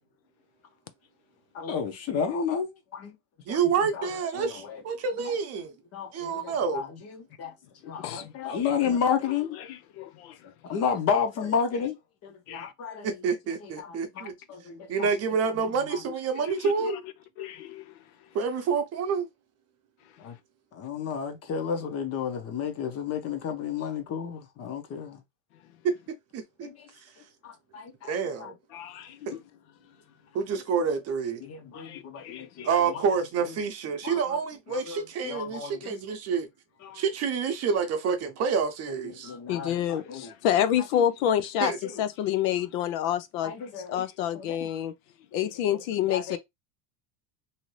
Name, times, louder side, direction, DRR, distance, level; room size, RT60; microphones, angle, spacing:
voice 1, 1.5-3.2 3.5-4.8 5.2-5.3 5.9-7.5 7.8-9.6 10.4-12.0 12.2-13.3 13.6-15.1 15.5-16.0 20.2-20.4 20.7-25.2 26.6-26.8 27.4-28.5 31.4-33.0 33.4-33.6 34.0-34.4 34.7-36.0 38.9-40.3 40.9-41.0 41.8-42.0 43.4-44.1 44.3-44.7 45.3-45.8 46.1-46.4, left 7 dB, 35° left, 0.8 m, -32 dB
voice 2, 3.5-5.7 6.1-6.8 13.0-14.3 14.9-17.0 18.3-19.3 26.3-26.7 28.1-28.5 29.3-29.4 30.3-31.4 32.6-36.5 36.9-39.3 41.6-41.8, right 6 dB, 35° right, 0.7 m, -28 dB
voice 3, 8.0-9.0 9.7-10.4 12.5-12.7 16.4-17.0 17.4-17.9 28.7-29.4 31.7-32.7 36.8-37.0 39.5-43.5 43.9-44.9 45.3-46.4, left 10 dB, 75° left, 0.6 m, -29 dB
2.8 x 2.5 x 3.1 m
supercardioid pair, 135°, 41 cm